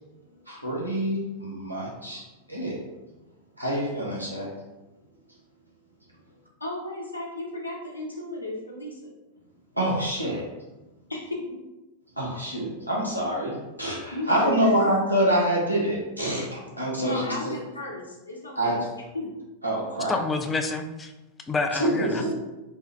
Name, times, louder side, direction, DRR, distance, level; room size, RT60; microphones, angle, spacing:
voice 1, 0.5-3.0 3.6-4.5 9.7-10.5 12.1-17.6 18.5-18.9 19.6-20.2 21.7-22.3, right 1 dB, 85° right, -4 dB, 0.9 m, -26 dB
voice 2, 6.6-9.1 11.1-11.5 14.1-14.7 17.0-18.8 19.1-19.3, left 1 dB, 80° left, -2 dB, 0.7 m, -34 dB
voice 3, 20.1-21.1 21.4-22.2, left 3 dB, 20° left, 7 dB, 0.3 m, -28 dB
3.6 x 2.2 x 3.2 m, 1.0 s
figure-of-eight pair, 90°, 0 cm